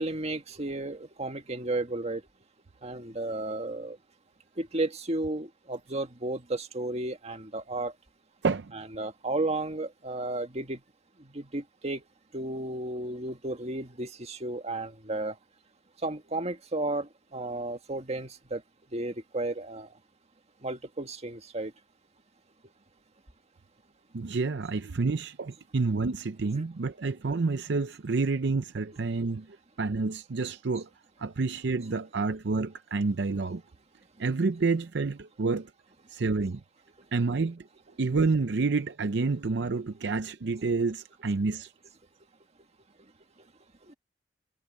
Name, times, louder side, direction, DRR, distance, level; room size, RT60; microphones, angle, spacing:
voice 1, 0.0-2.2 2.8-4.0 4.6-7.9 8.7-10.8 11.2-12.0 12.3-15.4 16.0-18.6 18.9-19.9 20.6-21.7 26.6-26.7 29.2-29.3 43.9-44.0, right 2 dB, 35° right, 1.8 m, -33 dB
voice 2, 24.1-30.9 31.2-33.6 34.2-35.7 36.1-36.6 37.1-37.7 38.0-41.7, right 4 dB, 70° right, 0.6 m, -29 dB
head